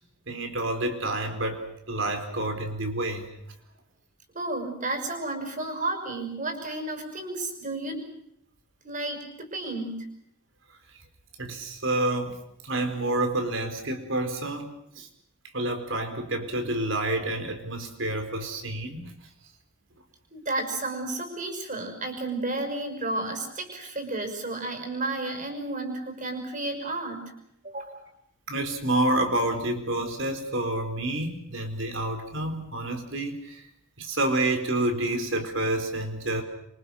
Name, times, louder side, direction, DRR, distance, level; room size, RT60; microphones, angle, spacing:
voice 1, 0.3-3.3 11.4-12.4 12.6-15.1 15.5-19.1 28.5-33.6 34.0-36.4, right 1 dB, 70° right, 6 dB, 4.4 m, -28 dB
voice 2, 4.3-8.1 8.8-10.0 20.3-27.3 27.6-28.1, right 2 dB, 40° right, 6 dB, 5.9 m, -32 dB
27.5 x 25.0 x 6.4 m, 0.75 s
head